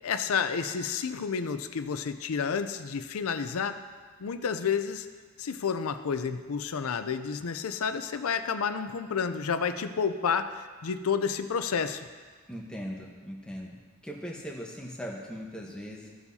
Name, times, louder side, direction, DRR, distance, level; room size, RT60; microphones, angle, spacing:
voice 1, 0.0-3.8 4.2-5.1 5.4-12.0, left 6 dB, 75° left, 9 dB, 0.5 m, -30 dB
voice 2, 12.5-13.7 14.0-16.1, equal, 5° left, -2 dB, 1.1 m, -39 dB
15.0 x 7.1 x 2.8 m, 1.5 s
head